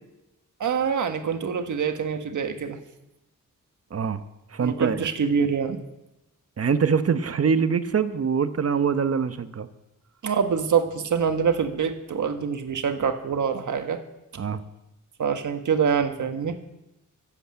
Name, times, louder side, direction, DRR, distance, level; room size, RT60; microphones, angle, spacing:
voice 1, 0.6-2.8 4.6-5.8 10.2-14.0 15.2-16.6, right 6 dB, 70° right, 7 dB, 1.5 m, -25 dB
voice 2, 3.9-4.2 4.5-5.1 6.6-9.7 14.4-14.6, right 6 dB, 50° right, 11 dB, 1.0 m, -24 dB
12.5 x 8.2 x 8.7 m, 0.93 s
cardioid pair, 85°, 31 cm